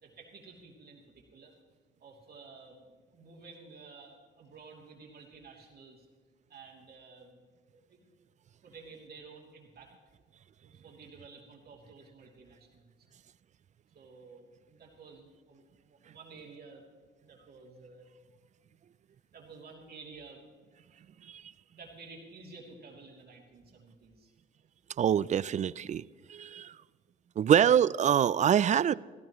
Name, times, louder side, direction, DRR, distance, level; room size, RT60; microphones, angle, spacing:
voice 1, 0.0-1.5 2.0-6.1 6.5-7.4 7.7-8.0 8.6-9.9 10.6-12.9 13.9-16.9 17.2-18.1 19.3-20.5 21.7-24.3, right 4 dB, 55° right, -1 dB, 2.9 m, -52 dB
voice 2, 25.0-26.8 27.4-28.9, right 9 dB, 40° right, 20 dB, 0.4 m, -25 dB
16.0 x 15.5 x 3.1 m, 1.5 s
supercardioid pair, 75°, 19 cm